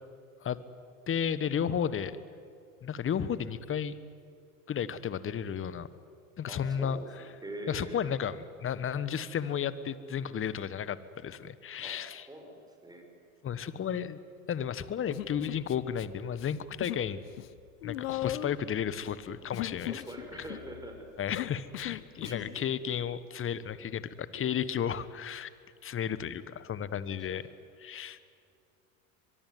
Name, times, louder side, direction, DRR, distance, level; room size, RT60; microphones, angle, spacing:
voice 1, 1.1-2.1 2.8-4.0 4.7-5.9 6.4-7.0 7.7-12.3 13.4-14.2 14.5-17.2 17.8-20.0 21.2-25.5 25.8-27.4 27.8-28.2, left 8 dB, 30° left, 15 dB, 1.4 m, -33 dB
voice 2, 1.7-2.1 6.4-8.1 11.8-12.0 12.3-13.1 19.8-21.1 22.2-22.7 27.1-27.4, right 1 dB, 10° right, 3 dB, 5.6 m, -44 dB
Human voice, 15.1-16.0 16.3-17.1 17.3-22.5, left 15 dB, 70° left, 1.0 m, -38 dB
23.0 x 22.5 x 9.4 m, 2.3 s
hypercardioid pair, 80°, 41 cm